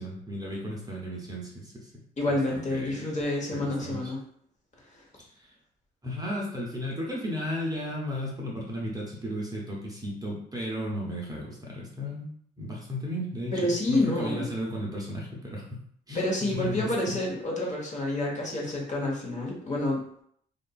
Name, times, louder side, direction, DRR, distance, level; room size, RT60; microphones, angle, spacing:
voice 1, 0.0-2.0 2.3-3.1 3.5-4.1 5.2-5.5 6.0-12.3 12.6-17.2, equal, 20° right, -3 dB, 0.7 m, -35 dB
voice 2, 2.2-4.2 13.5-14.5 16.1-20.0, left 1 dB, 35° left, -2 dB, 1.0 m, -28 dB
2.8 x 2.4 x 2.3 m, 0.66 s
cardioid pair, 90°, 20 cm